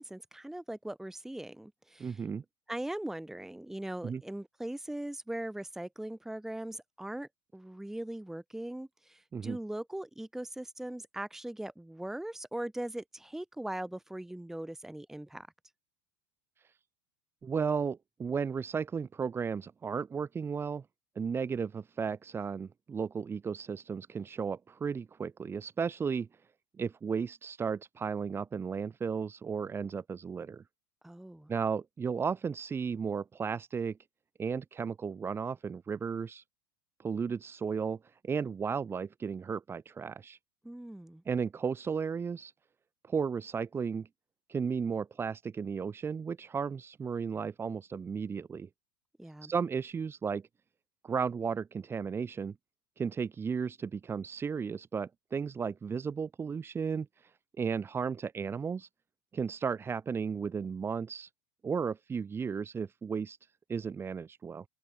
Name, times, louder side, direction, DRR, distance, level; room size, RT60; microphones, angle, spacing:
voice 1, 0.0-2.3 2.7-15.5 31.0-31.5 40.6-41.2 49.2-49.5, right 1 dB, 5° right, 2.3 m, -40 dB
voice 2, 2.0-2.4 4.0-4.2 9.3-9.6 17.4-20.8 21.2-26.3 26.8-30.6 31.5-34.0 34.4-36.4 37.0-38.0 38.2-40.4 41.3-42.5 43.1-44.1 44.5-48.7 49.4-50.4 51.0-52.5 53.0-57.3 57.6-58.9 59.3-61.3 61.6-63.4 63.7-64.6, right 6 dB, 20° right, 4.3 m, -34 dB
open air
figure-of-eight pair, 80°, 12 cm